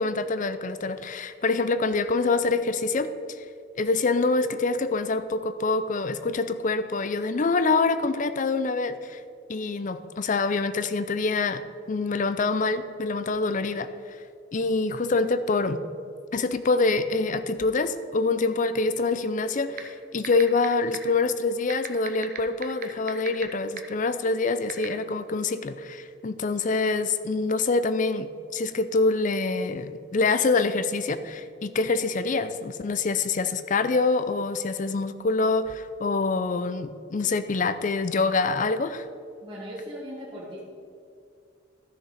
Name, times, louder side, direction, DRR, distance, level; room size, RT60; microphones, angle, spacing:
voice 1, 0.0-3.1 3.8-9.2 9.5-11.6 11.9-13.9 14.5-15.8 16.3-39.1, left 3 dB, 40° left, 12 dB, 0.5 m, -25 dB
sound 1, 19.8-19.9 20.2-20.7 20.9-21.0 21.7-23.4 23.8-23.9 24.7-24.9, right 10 dB, 45° right, 0.8 m, -33 dB
voice 2, 39.4-40.6, equal, 25° right, -6 dB, 1.6 m, -38 dB
12.5 x 6.8 x 5.0 m, 2.2 s
head